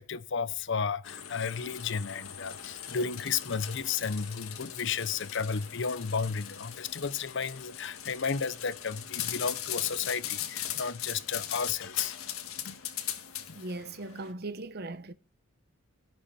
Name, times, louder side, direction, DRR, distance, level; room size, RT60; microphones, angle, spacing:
voice 1, 0.0-12.2 12.6-12.8 13.5-13.6, left 5 dB, 55° left, 0.7 m, -33 dB
sound 1, 1.0-14.3, left 11 dB, 80° left, 1.9 m, -39 dB
voice 2, 13.5-15.1, right 2 dB, 45° right, 0.9 m, -38 dB
18.0 x 13.0 x 4.2 m
head